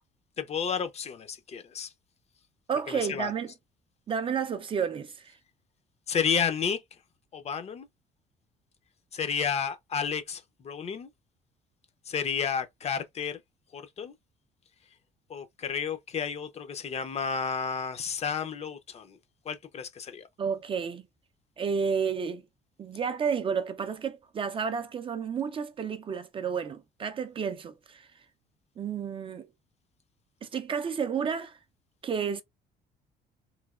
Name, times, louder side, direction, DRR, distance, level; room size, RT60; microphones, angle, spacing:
voice 1, 0.4-1.9 2.9-3.3 6.1-6.8 7.3-7.9 9.1-11.1 12.1-13.4 13.7-14.1 15.3-19.2 19.5-20.3, left 7 dB, 40° left, 0.5 m, -31 dB
voice 2, 2.7-3.5 4.1-5.4 20.4-21.0 21.6-22.4 22.8-28.1 28.8-29.5 30.4-31.6 32.0-32.4, right 6 dB, 30° right, 0.4 m, -31 dB
3.1 x 2.7 x 2.3 m
cardioid pair, 110°, 17 cm